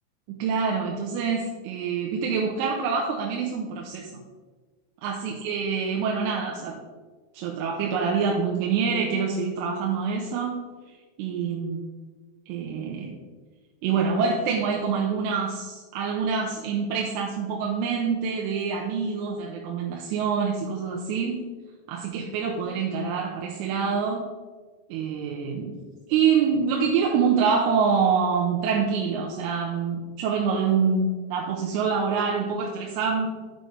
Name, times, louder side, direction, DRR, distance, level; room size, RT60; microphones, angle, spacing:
voice 1, 0.3-4.2 5.0-6.8 7.3-10.7 11.2-11.8 12.5-13.2 13.8-21.5 21.9-24.3 24.9-25.8 26.1-33.3, right 6 dB, 80° right, -1 dB, 3.3 m, -26 dB
10.0 x 7.9 x 3.3 m, 1.4 s
omnidirectional pair, 5.9 m